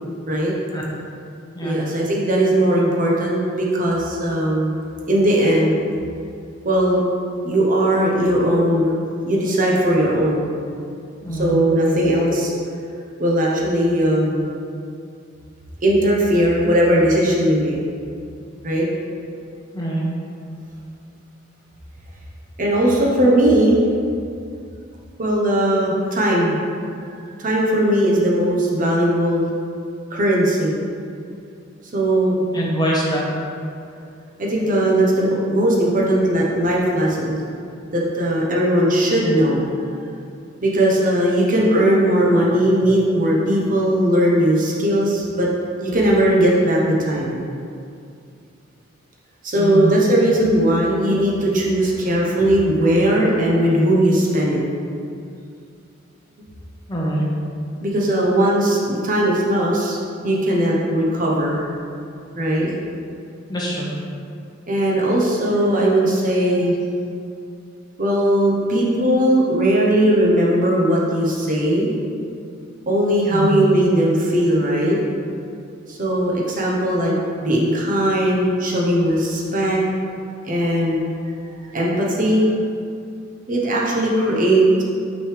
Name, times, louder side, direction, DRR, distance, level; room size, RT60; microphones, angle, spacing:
voice 1, 1.6-4.7 5.1-5.8 6.6-7.0 7.4-8.9 9.2-10.5 11.3-12.5 13.2-14.5 15.8-17.8 18.6-18.9 22.6-23.8 25.2-26.6 27.4-29.4 30.1-30.8 31.9-32.4 34.4-37.4 37.9-39.7 39.9-40.0 40.6-45.5 45.8-47.4 49.4-54.6 57.8-60.0 60.2-61.6 62.4-62.7 64.7-66.8 68.0-71.9 72.9-75.0 75.9-79.8 80.4-81.1 81.7-82.4 83.5-84.8, right 1 dB, 45° right, -3 dB, 0.9 m, -18 dB
voice 2, 11.2-11.6 19.7-20.0 32.5-33.2 49.6-49.9 56.9-57.3 63.5-63.9 73.3-73.6, right 1 dB, 20° left, -4 dB, 1.0 m, -23 dB
6.1 x 5.3 x 3.3 m, 2.4 s
head